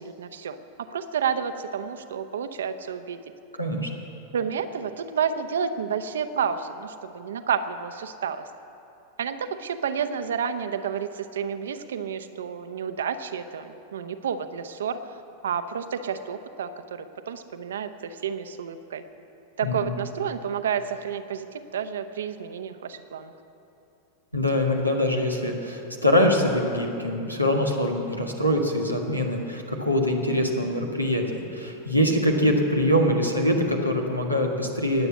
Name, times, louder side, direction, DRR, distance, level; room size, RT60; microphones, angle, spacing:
voice 1, 0.0-3.2 4.3-8.4 9.2-15.0 15.4-19.0 19.6-23.3, right 7 dB, 65° right, 10 dB, 0.8 m, -30 dB
voice 2, 3.6-3.9 19.6-19.9 24.3-35.1, left 1 dB, 90° left, 1 dB, 1.7 m, -24 dB
19.5 x 8.1 x 8.4 m, 2.9 s
figure-of-eight pair, 90°, 0 cm